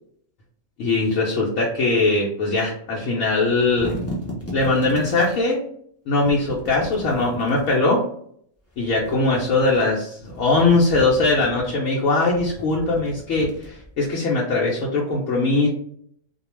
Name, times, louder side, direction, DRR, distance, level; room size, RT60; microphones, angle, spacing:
voice 1, 0.8-3.9 4.5-5.6 6.1-8.0 8.8-15.7, left 3 dB, 75° left, -4 dB, 0.9 m, -21 dB
sound 1, 3.4-5.4 6.2-7.8 8.7-9.8 10.2-11.7 12.3-14.1, equal, 20° left, 0.4 m, -36 dB
2.3 x 2.2 x 3.0 m, 0.65 s
omnidirectional pair, 1.4 m